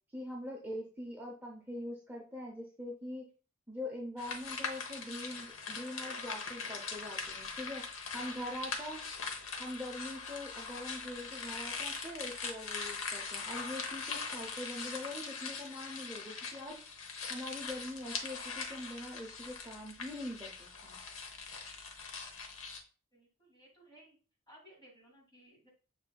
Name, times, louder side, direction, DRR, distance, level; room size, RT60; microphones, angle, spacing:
voice 1, 0.1-3.2 3.7-7.8 8.1-9.0 9.6-16.8 17.3-20.5 20.8-21.0, left 1 dB, 10° right, -2 dB, 0.6 m, -43 dB
sound 1, 4.2-22.8, left 4 dB, 85° left, 0.8 m, -41 dB
voice 2, 23.1-24.2 24.5-25.7, right 1 dB, 20° left, -2 dB, 1.9 m, -59 dB
6.8 x 3.3 x 2.2 m, 0.37 s
head